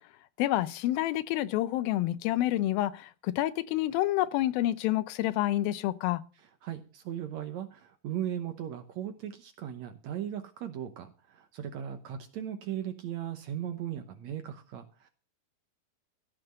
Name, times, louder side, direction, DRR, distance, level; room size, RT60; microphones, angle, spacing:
voice 1, 0.4-6.2, left 15 dB, 90° left, 2.6 m, -28 dB
voice 2, 6.6-15.1, right 10 dB, 70° right, 1.8 m, -37 dB
15.5 x 6.0 x 7.8 m
omnidirectional pair, 4.1 m